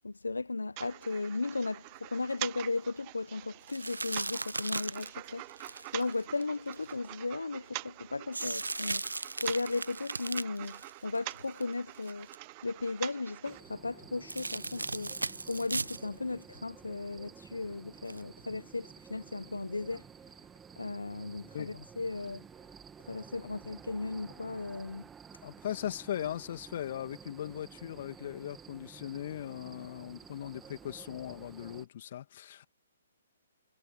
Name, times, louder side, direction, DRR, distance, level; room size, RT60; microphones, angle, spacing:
voice 1, 0.0-12.3 12.6-15.1 15.5-20.0 20.8-22.4 23.1-25.0, left 3 dB, 80° left, 1.2 m, -36 dB
sound 1, 0.8-13.6, right 28 dB, 35° right, 0.6 m, -45 dB
sound 2, 3.7-6.9 8.3-11.6 11.9-12.4 14.3-16.0 16.4-16.5 18.1-18.2, right 3 dB, 80° right, 0.9 m, -37 dB
sound 3, 13.4-31.9, right 7 dB, 10° right, 2.1 m, -52 dB
voice 2, 25.4-32.7, left 11 dB, 50° left, 2.4 m, -39 dB
figure-of-eight pair, 125°, 0 cm